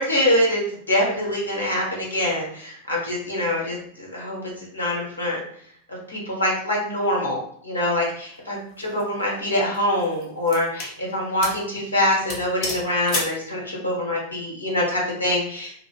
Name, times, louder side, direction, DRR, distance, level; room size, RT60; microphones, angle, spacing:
voice 1, 0.0-5.4 5.9-15.7, left 1 dB, 75° left, -4 dB, 1.2 m, -24 dB
sound 1, 8.7-9.0 9.7-11.0 11.4-11.7 11.9-12.0 12.3-13.4, left 2 dB, 35° left, 0.9 m, -31 dB
2.4 x 2.4 x 3.7 m, 0.62 s
figure-of-eight pair, 90°, 0 cm